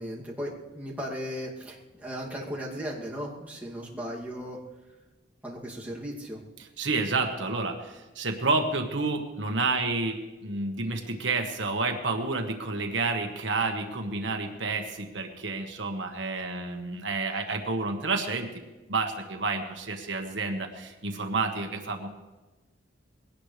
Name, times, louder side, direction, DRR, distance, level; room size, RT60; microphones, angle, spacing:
voice 1, 0.0-4.6 5.4-6.4, equal, 10° right, -5 dB, 2.6 m, -36 dB
voice 2, 6.6-18.6 18.9-22.1, right 3 dB, 75° right, 4 dB, 1.5 m, -30 dB
21.0 x 18.0 x 3.4 m, 1.2 s
head